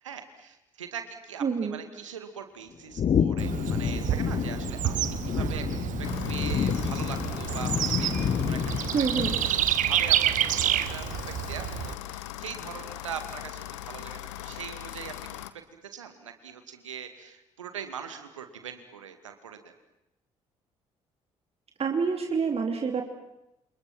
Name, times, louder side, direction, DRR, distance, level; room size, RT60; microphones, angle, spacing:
voice 1, 0.0-15.6 15.9-19.7, right 7 dB, 80° right, 8 dB, 2.2 m, -42 dB
voice 2, 1.4-1.8 8.9-9.3 21.8-23.0, right 5 dB, 40° right, 3 dB, 3.1 m, -27 dB
sound 1, 3.0-9.7, left 8 dB, 45° left, 1.2 m, -29 dB
Bird / Insect, 3.4-11.9, right 12 dB, 55° right, 1.4 m, -29 dB
sound 2, 6.0-15.5, left 14 dB, 75° left, 1.2 m, -40 dB
30.0 x 28.5 x 6.1 m, 0.89 s
figure-of-eight pair, 45°, 16 cm